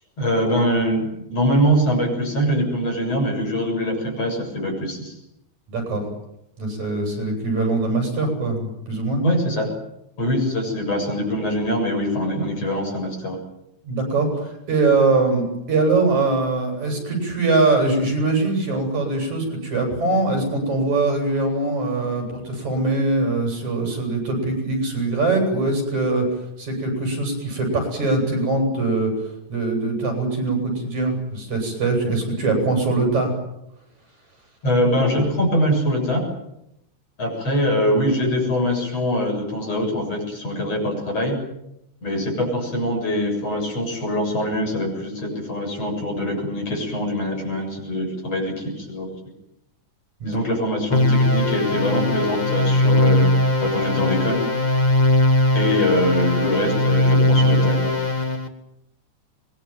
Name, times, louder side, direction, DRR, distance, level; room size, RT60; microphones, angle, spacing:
voice 1, 0.2-5.2 9.2-9.7 10.2-13.4 34.6-36.3 37.2-41.4 42.0-49.2 50.2-53.3 53.6-54.5 55.5-58.0, equal, 50° left, 2 dB, 8.4 m, -23 dB
voice 2, 5.7-6.0 6.6-9.2 13.8-29.1 29.5-33.3 50.2-50.4, right 3 dB, 65° right, 3 dB, 9.5 m, -22 dB
sound 1, 50.9-58.5, left 1 dB, 15° left, 1.6 m, -19 dB
25.5 x 22.0 x 9.1 m, 0.82 s
omnidirectional pair, 3.6 m